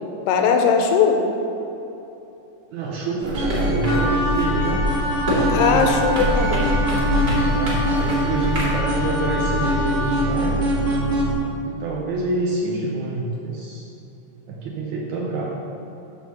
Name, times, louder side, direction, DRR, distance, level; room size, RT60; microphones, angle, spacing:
voice 1, 0.3-1.2 5.5-6.7, left 6 dB, 90° left, 4 dB, 2.2 m, -19 dB
voice 2, 2.7-4.9 5.2-6.1 7.4-10.7 11.7-13.9 14.5-15.4, right 2 dB, 80° right, -3 dB, 1.7 m, -27 dB
sound 1, 3.2-8.8, equal, 45° right, 1.2 m, -26 dB
sound 2, 3.3-11.3, right 1 dB, 65° right, 1.3 m, -24 dB
Wind instrument woodwind instrument, 3.9-10.3, left 2 dB, 65° left, 0.8 m, -27 dB
7.2 x 3.4 x 6.3 m, 2.9 s
omnidirectional pair, 3.7 m